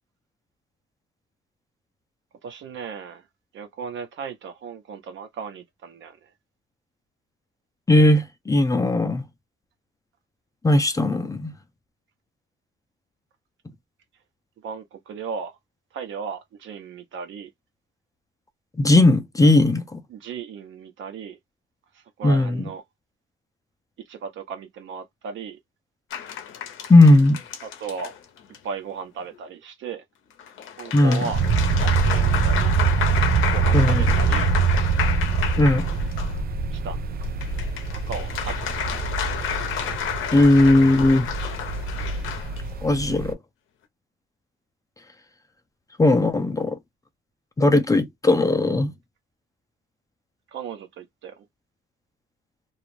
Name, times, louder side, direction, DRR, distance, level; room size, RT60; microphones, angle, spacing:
voice 1, 2.4-3.3 3.5-6.3 14.6-15.6 15.9-17.5 20.1-21.4 21.9-22.8 24.0-25.6 27.6-28.2 28.6-30.0 30.8-31.4 31.7-32.7 33.5-34.5 36.7-37.1 37.9-38.9 50.5-51.5, right 6 dB, 75° right, 0.8 m, -36 dB
voice 2, 7.9-9.2 10.6-11.5 18.8-20.0 22.2-22.6 26.9-27.4 30.9-31.2 33.7-34.0 35.6-35.9 40.3-41.3 42.8-43.4 46.0-46.8 47.6-48.9, left 2 dB, 15° left, 0.5 m, -17 dB
sound 1, 26.1-28.6 30.4-36.4 37.2-42.6, left 9 dB, 80° left, 0.7 m, -31 dB
sound 2, 31.3-43.3, right 5 dB, 50° right, 0.5 m, -24 dB
2.4 x 2.0 x 3.0 m
cardioid pair, 90°, 20 cm